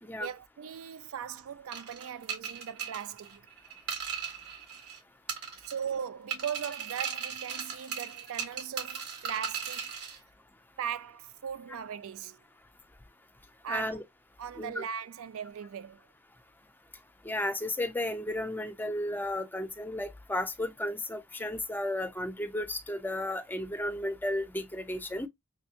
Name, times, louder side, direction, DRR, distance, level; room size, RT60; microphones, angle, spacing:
voice 1, 0.2-3.5 5.6-9.9 10.8-12.4 13.6-14.0 14.4-16.0, right 8 dB, 65° right, 0.4 m, -39 dB
sound 1, 1.7-5.0 5.3-6.0 6.3-10.2, right 7 dB, 85° right, 1.7 m, -37 dB
voice 2, 13.7-14.0 14.6-14.8 17.2-25.3, left 1 dB, 10° left, 0.6 m, -33 dB
6.3 x 2.2 x 2.8 m
head